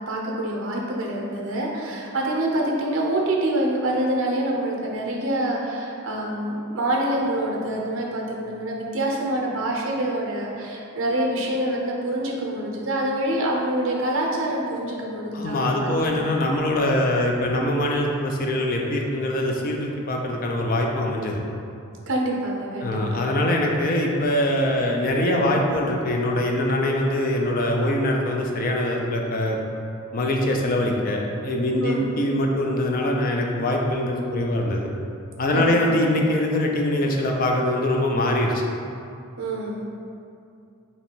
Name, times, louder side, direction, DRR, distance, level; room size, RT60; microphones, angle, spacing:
voice 1, 0.1-16.0 22.1-23.2 31.8-32.0 35.5-35.8 39.4-39.9, right 1 dB, 65° right, -2 dB, 0.6 m, -26 dB
voice 2, 15.3-21.4 22.8-29.6 30.1-34.9 35.4-38.6, left 1 dB, 40° left, 1 dB, 0.4 m, -23 dB
2.9 x 2.6 x 4.3 m, 2.5 s
head